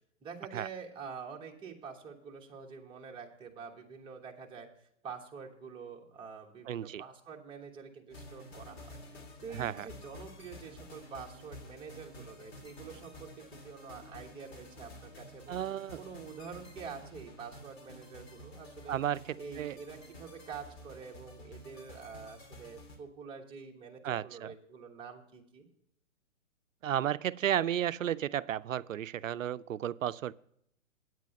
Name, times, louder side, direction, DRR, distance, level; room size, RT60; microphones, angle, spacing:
voice 1, 0.2-4.7 5.0-9.0 9.4-15.6 16.0-19.0 19.4-25.7, right 6 dB, 15° right, 0 dB, 1.3 m, -47 dB
voice 2, 6.7-7.0 9.5-9.9 15.5-16.0 18.9-19.2 19.6-19.8 24.0-24.5 26.8-30.3, right 11 dB, 75° right, 17 dB, 0.5 m, -33 dB
sound 1, 8.1-23.0, left 1 dB, 50° left, 2.5 m, -51 dB
9.2 x 8.2 x 5.2 m, 0.74 s
figure-of-eight pair, 125°, 39 cm